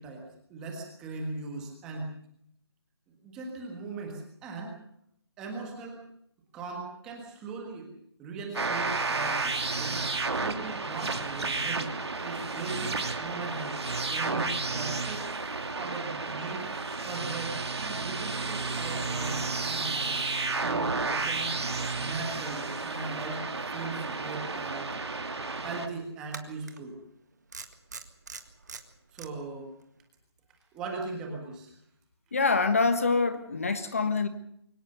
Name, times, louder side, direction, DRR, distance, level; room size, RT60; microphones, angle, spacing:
voice 1, 0.0-2.2 3.1-4.7 5.4-6.0 6.5-7.9 8.2-11.9 12.2-13.8 14.1-15.2 15.8-16.7 17.0-20.2 20.5-21.5 22.0-25.1 25.6-27.0 29.1-29.7 30.7-31.8, right 3 dB, 5° right, 1 dB, 1.5 m, -39 dB
sound 1, 8.5-25.9, right 3 dB, 75° right, 2.7 m, -32 dB
sound 2, 26.3-26.8 27.5-29.3, right 4 dB, 40° right, 1.9 m, -42 dB
voice 2, 32.3-34.3, left 4 dB, 30° left, 10 dB, 1.3 m, -25 dB
23.0 x 19.0 x 6.7 m, 0.73 s
hypercardioid pair, 180°, 14 cm